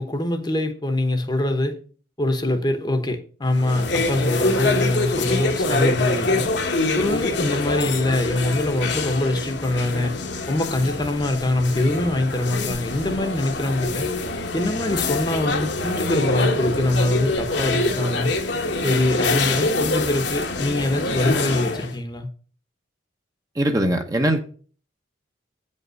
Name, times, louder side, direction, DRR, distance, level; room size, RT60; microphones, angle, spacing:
voice 1, 0.0-1.8 2.2-6.4 6.9-10.1 10.5-14.1 14.5-18.3 18.8-22.3, left 1 dB, 20° left, 1.0 m, -23 dB
sound 1, 3.5-21.9, left 2 dB, 60° left, 1.2 m, -25 dB
voice 2, 23.5-24.4, right 1 dB, 15° right, 0.9 m, -21 dB
8.5 x 5.4 x 6.4 m
head